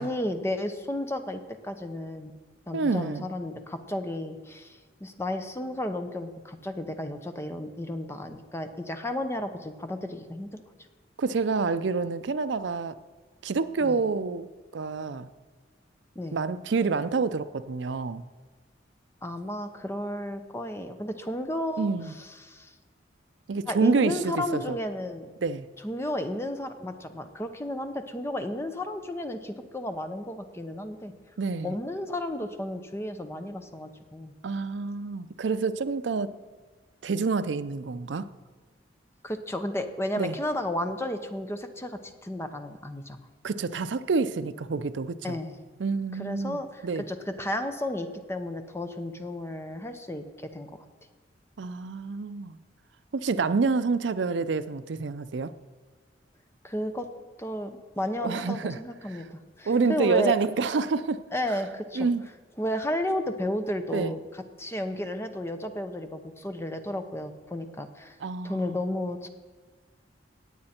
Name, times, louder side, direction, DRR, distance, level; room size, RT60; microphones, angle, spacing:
voice 1, 0.0-2.3 2.7-10.5 13.8-14.0 16.2-16.4 19.2-21.9 22.2-22.7 23.7-25.3 25.8-31.1 31.6-34.3 39.2-43.2 45.2-45.6 46.2-46.8 47.1-50.8 56.6-57.1 57.4-59.2 59.6-60.4 61.3-62.1 62.6-64.2 64.6-68.2 68.4-69.3, left 1 dB, 15° left, 7 dB, 0.8 m, -33 dB
voice 2, 2.7-3.3 11.2-13.0 13.4-14.5 14.7-15.3 16.3-18.2 21.8-22.1 23.5-24.8 25.4-25.7 31.4-31.7 34.4-36.3 37.0-38.3 40.2-40.3 43.4-45.4 45.8-47.0 51.6-52.6 53.1-55.5 58.2-58.8 59.1-59.3 59.7-61.2 61.9-62.3 63.9-64.2 68.2-68.7, right 4 dB, 70° right, 13 dB, 0.5 m, -28 dB
17.5 x 8.7 x 4.3 m, 1.4 s
head